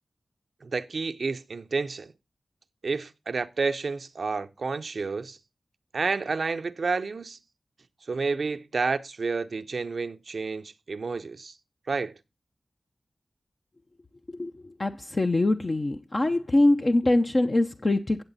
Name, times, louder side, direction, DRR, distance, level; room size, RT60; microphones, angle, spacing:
voice 1, 0.6-2.1 2.8-5.4 5.9-7.4 8.1-11.5 11.9-12.1, right 4 dB, 75° right, 0.6 m, -30 dB
voice 2, 14.3-18.2, left 2 dB, 45° left, 0.7 m, -24 dB
8.9 x 7.9 x 4.0 m
cardioid pair, 45°, 0 cm